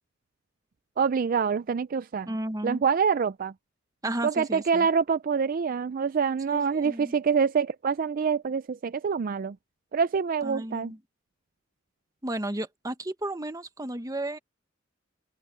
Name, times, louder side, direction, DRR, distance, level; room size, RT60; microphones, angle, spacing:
voice 1, 1.0-2.3 2.6-3.5 4.2-9.6 9.9-10.9, right 6 dB, 45° right, 0.4 m, -26 dB
voice 2, 2.3-2.8 4.0-4.9 6.5-7.1 10.4-11.0 12.2-14.4, right 1 dB, 20° right, 1.1 m, -33 dB
head